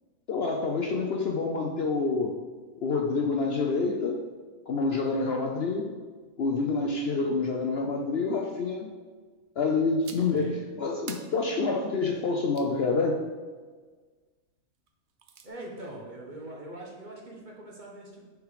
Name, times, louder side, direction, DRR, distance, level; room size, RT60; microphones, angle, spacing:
voice 1, 0.3-2.4 2.8-4.2 4.7-5.9 6.4-8.9 9.6-13.2, left 3 dB, 55° left, 2 dB, 0.8 m, -27 dB
sound 1, 10.0-10.4 11.1-12.8 14.9-15.5, right 6 dB, 60° right, 0.9 m, -47 dB
voice 2, 10.1-10.5 15.4-18.2, right 1 dB, 35° right, -2 dB, 1.3 m, -42 dB
6.3 x 5.0 x 4.9 m, 1.4 s
omnidirectional pair, 1.5 m